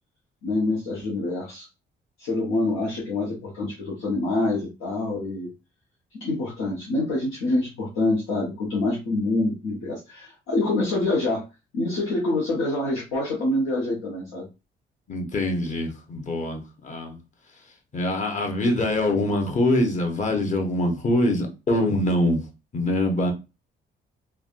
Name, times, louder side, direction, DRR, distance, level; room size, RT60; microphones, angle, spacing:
voice 1, 0.4-1.7 2.2-5.5 6.1-11.5 11.7-14.5, left 2 dB, 90° left, 1.0 m, -26 dB
voice 2, 15.1-17.2 17.9-22.4 22.7-23.3, left 1 dB, 40° left, 1.0 m, -24 dB
3.3 x 2.2 x 2.5 m
cardioid pair, 90°, 20 cm